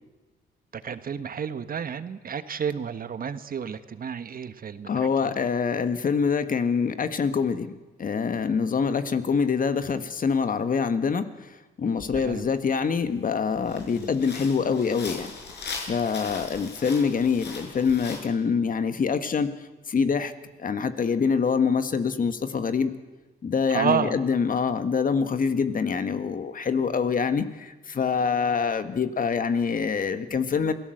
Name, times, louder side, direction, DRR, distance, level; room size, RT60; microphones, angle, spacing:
voice 1, 0.7-5.3 12.2-12.5 14.0-14.1 23.7-24.1, right 7 dB, 45° right, 11 dB, 1.5 m, -30 dB
voice 2, 4.9-15.3 15.8-19.5 19.9-20.3 20.6-22.9 23.4-30.7, left 5 dB, 45° left, 10 dB, 1.7 m, -25 dB
sound 1, 12.0-12.3 12.9-13.0 13.5-18.2, left 4 dB, 60° left, 6.1 m, -39 dB
27.5 x 17.5 x 8.0 m, 1.2 s
cardioid pair, 90°, 20 cm